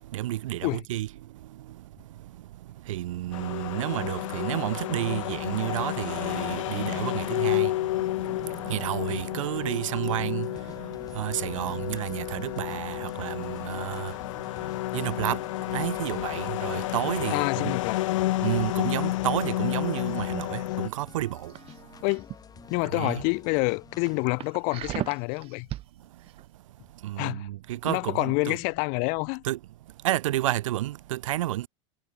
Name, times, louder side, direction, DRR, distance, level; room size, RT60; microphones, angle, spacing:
voice 1, 0.1-1.1 2.9-7.7 8.4-10.5 11.2-14.1 14.9-15.4 15.7-17.8 18.4-21.5 22.9-23.2 27.0-28.6 29.4-29.6 30.0-31.7, right 15 dB, 80° right, 3.5 m, -30 dB
sound 1, 3.3-20.9, left 16 dB, 75° left, 0.8 m, -31 dB
sound 2, 8.2-24.2, left 7 dB, 25° left, 5.7 m, -50 dB
voice 2, 17.3-18.0 22.0-22.3 22.7-25.7 27.2-27.5 27.8-29.4, left 36 dB, 55° left, 1.4 m, -27 dB
sound 3, 21.5-22.4 22.8-23.1 23.5-23.6 24.0-25.9 26.3-26.4, right 15 dB, 35° right, 1.1 m, -36 dB
supercardioid pair, 125°, 16 cm